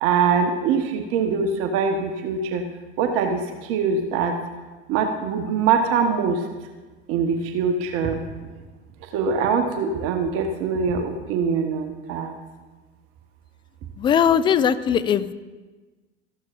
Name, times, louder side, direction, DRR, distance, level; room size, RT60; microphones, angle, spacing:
voice 1, 0.0-2.6 3.0-4.4 4.9-6.4 7.1-8.2 9.1-12.3, right 5 dB, 40° right, 5 dB, 1.1 m, -23 dB
voice 2, 14.0-15.3, left 8 dB, 15° left, 14 dB, 0.4 m, -19 dB
14.0 x 12.0 x 2.5 m, 1.3 s
figure-of-eight pair, 80°, 34 cm